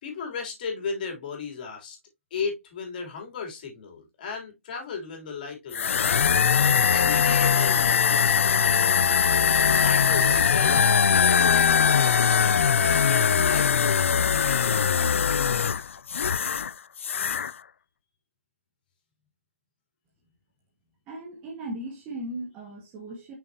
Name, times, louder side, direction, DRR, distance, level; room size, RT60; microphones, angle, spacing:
voice 1, 0.0-2.0 2.3-6.1 6.9-8.9 9.8-15.6, left 5 dB, 40° left, 3.0 m, -36 dB
sound 1, 5.7-16.7 17.0-17.5, left 7 dB, 65° left, 0.4 m, -21 dB
voice 2, 21.1-23.3, right 1 dB, 20° right, 1.6 m, -37 dB
6.5 x 6.0 x 2.7 m
hypercardioid pair, 155°, 7 cm